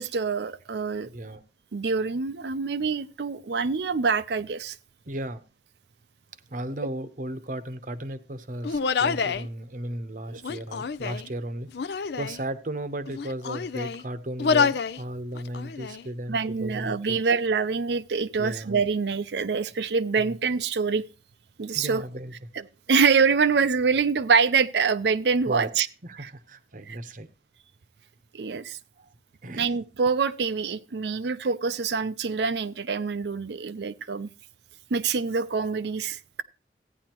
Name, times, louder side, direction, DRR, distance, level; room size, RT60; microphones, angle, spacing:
voice 1, 0.0-1.1 1.7-4.8 16.3-21.0 21.6-22.0 22.9-25.9 26.2-26.3 26.9-27.0 28.3-28.8 29.6-34.3 34.9-36.4, right 5 dB, 70° right, 0.5 m, -25 dB
voice 2, 5.1-5.4 6.5-11.7 12.2-17.2 18.4-18.8 20.2-20.4 21.7-22.5 25.5-27.3 29.0-29.1 29.4-29.7, right 1 dB, 50° right, 0.8 m, -35 dB
Human voice, 8.6-9.5 10.4-11.3 11.7-12.4 13.1-14.0 14.4-15.0 15.4-16.0, left 5 dB, 65° left, 0.5 m, -27 dB
14.5 x 9.8 x 3.0 m
head